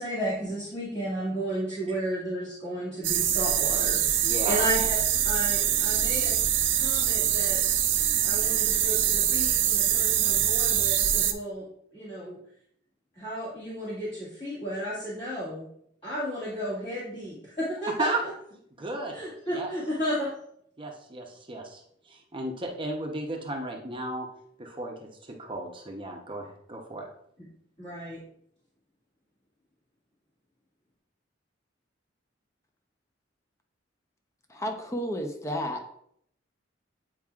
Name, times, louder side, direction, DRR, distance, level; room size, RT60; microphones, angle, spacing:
voice 1, 0.0-5.0 5.2-6.4 6.7-7.6 8.2-11.7 11.9-12.4 13.2-15.7 16.0-18.3 19.1-20.3 27.8-28.2, equal, 30° left, -10 dB, 2.0 m, -33 dB
sound 1, 3.0-11.3, right 10 dB, 70° right, 0.7 m, -24 dB
voice 2, 4.2-4.7 18.0-18.2 18.8-19.1 19.5-19.7 20.8-21.8 22.1-24.3 24.6-24.9 25.2-27.1, right 2 dB, 25° right, 1 dB, 0.8 m, -34 dB
voice 3, 34.5-35.9, equal, 15° left, 3 dB, 0.7 m, -32 dB
9.0 x 4.6 x 2.4 m, 0.70 s
head